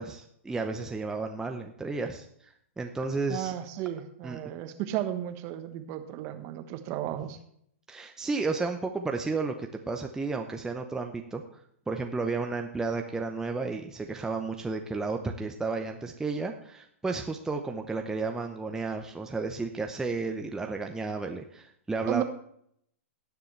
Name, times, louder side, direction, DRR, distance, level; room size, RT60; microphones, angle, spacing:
voice 1, 0.0-2.3 2.8-3.5 4.2-4.4 7.9-11.4 11.9-22.2, right 3 dB, 10° right, 4 dB, 0.8 m, -32 dB
voice 2, 3.3-7.4 22.1-22.2, right 12 dB, 40° right, 8 dB, 1.3 m, -34 dB
18.5 x 6.9 x 3.3 m, 0.69 s
hypercardioid pair, 120°, 7 cm